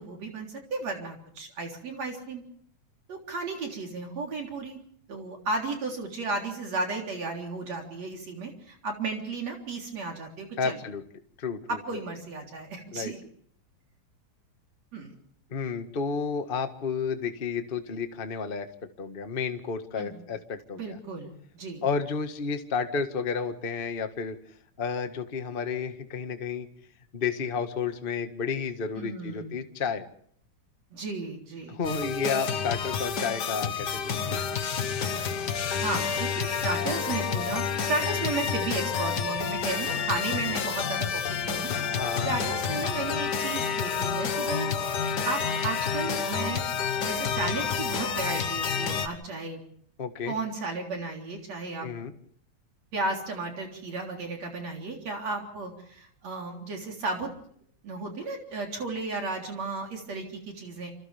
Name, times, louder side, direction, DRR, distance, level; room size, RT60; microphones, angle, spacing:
voice 1, 0.0-2.4 3.1-4.8 5.1-10.8 11.7-13.2 14.9-15.1 20.0-20.2 20.7-21.8 29.0-29.7 30.9-32.1 35.7-41.7 42.2-46.6 47.0-49.6 50.2-51.9 52.9-57.3 57.8-60.9, right 3 dB, 60° right, 1 dB, 4.7 m, -34 dB
voice 2, 10.6-11.0 11.4-11.8 12.9-13.1 15.5-18.7 19.0-21.0 21.8-24.4 24.8-26.7 27.1-30.0 31.7-34.5 41.9-42.3 50.0-50.3 51.8-52.1, left 5 dB, 30° left, 7 dB, 1.1 m, -31 dB
sound 1, 31.8-49.1, left 6 dB, 50° left, 1.4 m, -29 dB
28.5 x 28.0 x 3.5 m, 0.63 s
omnidirectional pair, 3.5 m